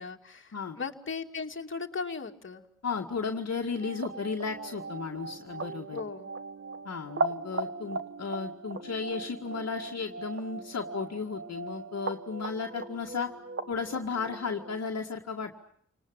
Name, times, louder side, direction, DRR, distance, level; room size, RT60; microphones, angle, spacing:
voice 1, 0.0-2.7 5.9-6.3, left 5 dB, 40° left, 2 dB, 2.5 m, -37 dB
voice 2, 2.8-6.0 6.8-13.3 13.7-15.6, left 5 dB, 55° left, 1 dB, 2.1 m, -34 dB
sound 1, 3.7-14.8, right 3 dB, 45° right, 1.6 m, -38 dB
29.5 x 19.5 x 8.8 m, 0.69 s
cardioid pair, 70°, 31 cm